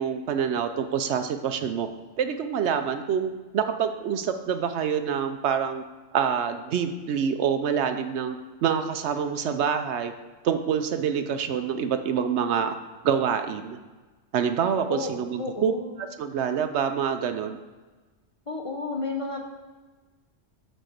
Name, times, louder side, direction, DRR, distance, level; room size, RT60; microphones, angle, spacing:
voice 1, 0.0-1.9 2.2-5.8 6.1-10.1 10.4-12.7 13.0-13.8 14.3-15.7 16.2-17.6, right 7 dB, 70° right, 8 dB, 0.8 m, -26 dB
voice 2, 14.9-16.0 18.5-19.4, left 3 dB, 35° left, 1 dB, 0.7 m, -32 dB
6.2 x 4.5 x 6.6 m, 1.3 s
omnidirectional pair, 1.3 m